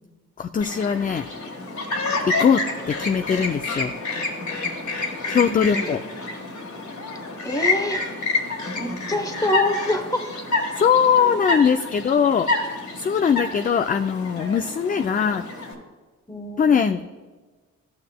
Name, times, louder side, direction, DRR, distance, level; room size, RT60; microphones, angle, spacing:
voice 1, 0.4-1.3 2.3-3.9 5.3-6.0 10.8-15.5 16.6-17.0, left 7 dB, 25° left, 8 dB, 0.3 m, -21 dB
Chirp tweet, 0.6-15.7, left 3 dB, 65° left, 1.7 m, -28 dB
voice 2, 5.4-5.9 7.4-8.0 8.7-10.3 16.3-16.9, left 1 dB, 10° left, 6 dB, 1.0 m, -26 dB
12.0 x 6.5 x 2.2 m, 1.3 s
supercardioid pair, 55°, 32 cm